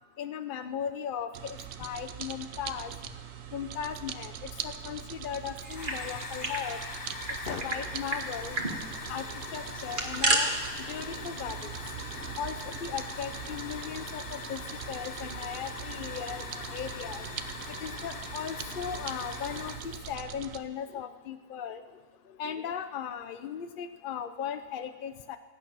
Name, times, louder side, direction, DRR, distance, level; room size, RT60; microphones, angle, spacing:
voice 1, 0.2-2.9 3.5-4.3 4.6-6.8 7.5-8.6 9.1-9.2 9.5-10.5 10.9-11.7 12.4-14.6 14.9-17.2 17.8-21.8 22.4-25.4, left 8 dB, 70° left, 10 dB, 0.5 m, -37 dB
sound 1, 1.3-20.6, right 9 dB, 60° right, 1.0 m, -42 dB
sound 2, 5.6-6.6 6.9-7.0 7.3-7.8 8.1-8.2 8.5-8.7 9.7-10.4, right 2 dB, 30° right, 1.8 m, -30 dB
Hiss / Fire, 5.7-20.2, left 4 dB, 40° left, 1.0 m, -42 dB
26.0 x 8.8 x 6.1 m, 1.4 s
omnidirectional pair, 1.7 m